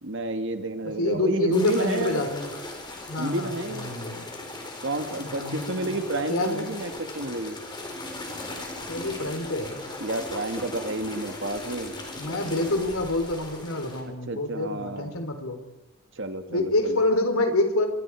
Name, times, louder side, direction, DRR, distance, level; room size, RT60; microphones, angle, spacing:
voice 1, 0.0-2.2 3.2-3.9 4.8-7.6 10.0-11.9 14.3-15.1 16.2-17.0, right 2 dB, 55° right, 7 dB, 2.1 m, -30 dB
voice 2, 0.8-2.5 3.1-4.3 5.2-6.8 8.9-9.8 12.1-15.6 16.5-17.9, left 2 dB, 75° left, 6 dB, 3.8 m, -27 dB
sound 1, 1.5-14.0, left 2 dB, 20° left, 4.2 m, -38 dB
25.5 x 25.5 x 4.8 m, 0.95 s
head